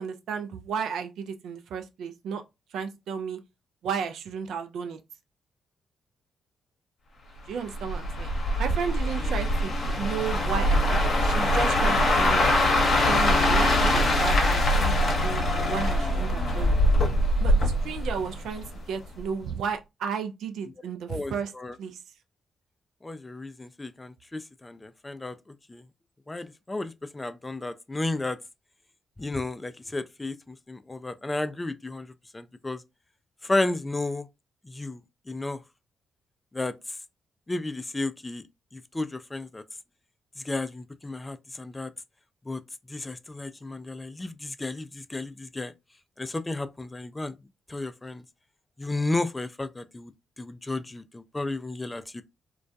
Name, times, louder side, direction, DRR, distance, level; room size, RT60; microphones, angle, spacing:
voice 1, 0.0-2.4 2.7-3.4 3.8-5.0 7.5-8.3 8.6-12.6 13.1-16.8 17.4-21.5 21.8-22.0, right 6 dB, 70° right, 0.4 m, -33 dB
sound 1, 7.7-18.8 19.2-19.5, left 1 dB, 55° left, 0.8 m, -23 dB
voice 2, 21.1-21.8 23.0-25.4 25.7-25.8 26.3-28.4 29.2-32.8 33.4-34.3 34.6-35.0 35.3-35.6 36.5-36.7 37.5-38.4 38.7-39.6 40.4-41.9 42.5-42.6 42.9-45.7 46.2-47.3 47.7-48.2 48.8-50.1 50.4-52.2, left 2 dB, 20° left, 0.3 m, -33 dB
2.2 x 2.2 x 2.6 m
hypercardioid pair, 40°, 0 cm